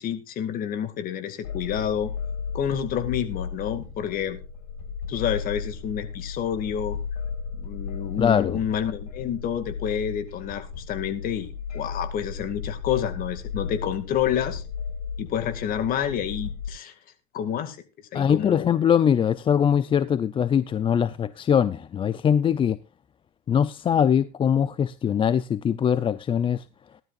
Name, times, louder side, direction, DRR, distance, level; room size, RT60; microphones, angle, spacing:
voice 1, 0.0-2.1 2.5-4.4 5.1-7.0 7.5-14.6 15.2-16.9 17.3-17.8 18.1-18.7, left 9 dB, 45° left, 2.2 m, -29 dB
sound 1, 1.4-16.7, left 6 dB, 80° left, 5.7 m, -35 dB
voice 2, 8.2-8.6 18.1-22.8 23.5-26.6, left 8 dB, 25° left, 0.6 m, -22 dB
18.5 x 12.0 x 2.5 m
hypercardioid pair, 100°, 20 cm